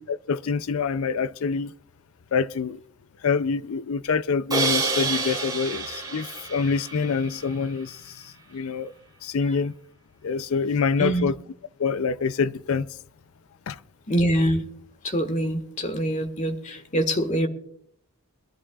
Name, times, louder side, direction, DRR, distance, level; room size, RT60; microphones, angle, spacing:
voice 1, 0.1-1.7 2.3-2.8 3.2-8.9 9.2-9.7 10.2-11.4 11.8-13.0 13.7-13.8, left 5 dB, 70° left, 0.4 m, -26 dB
Crash cymbal, 4.5-7.6, right 3 dB, 20° right, 3.5 m, -28 dB
voice 2, 11.0-11.3 14.1-14.6 15.0-17.5, equal, 35° left, 1.6 m, -24 dB
22.5 x 13.5 x 2.4 m
head